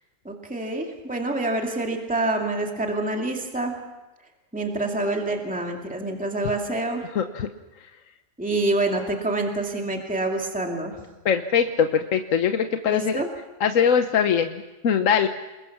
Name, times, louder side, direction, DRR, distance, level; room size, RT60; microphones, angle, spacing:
voice 1, 0.2-3.7 4.5-7.1 8.4-11.0 12.9-13.3, right 2 dB, 5° right, 1 dB, 2.3 m, -27 dB
voice 2, 7.1-7.5 11.2-13.2 13.6-15.3, left 7 dB, 60° left, 7 dB, 1.2 m, -22 dB
28.0 x 21.0 x 6.0 m, 1.1 s
omnidirectional pair, 1.7 m